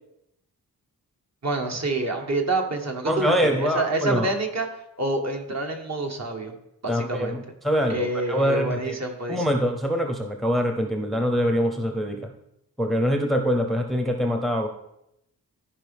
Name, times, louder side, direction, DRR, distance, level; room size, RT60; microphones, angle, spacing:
voice 1, 1.4-4.7 5.0-6.5 6.8-7.4 7.9-9.4, right 2 dB, 50° right, 2 dB, 1.3 m, -27 dB
voice 2, 3.1-4.3 6.9-9.0 9.3-12.3 12.8-14.7, equal, ahead, 4 dB, 0.7 m, -24 dB
14.5 x 5.0 x 3.5 m, 0.82 s
wide cardioid pair, 125°, 36 cm